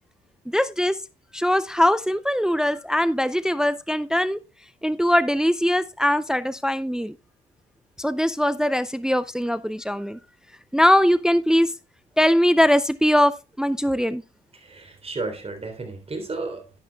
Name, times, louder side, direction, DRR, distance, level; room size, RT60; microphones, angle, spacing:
voice 1, 0.5-1.0 1.3-4.4 4.8-7.1 8.0-10.2 10.7-11.7 12.2-14.2, equal, 5° right, 0.5 m, -21 dB
voice 2, 14.5-16.7, right 3 dB, 30° right, 3.4 m, -33 dB
11.0 x 10.5 x 2.3 m
cardioid pair, 90°, 20 cm